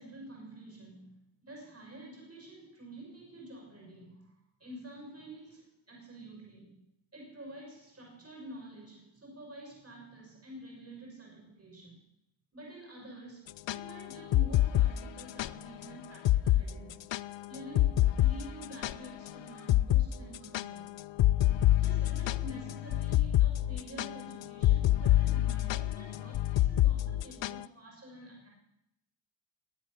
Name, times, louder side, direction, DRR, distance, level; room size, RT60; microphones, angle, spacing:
voice 1, 0.0-6.8 7.1-12.0 12.5-17.0 17.5-20.9 21.8-28.5, right 1 dB, 30° right, -1 dB, 6.3 m, -48 dB
sound 1, 13.5-15.5 15.8-15.9 16.3-16.6 16.9-19.3 19.7-20.1 20.3-27.6, left 14 dB, 65° left, 0.5 m, -26 dB
21.0 x 8.5 x 6.7 m, 0.82 s
wide cardioid pair, 95°, 49 cm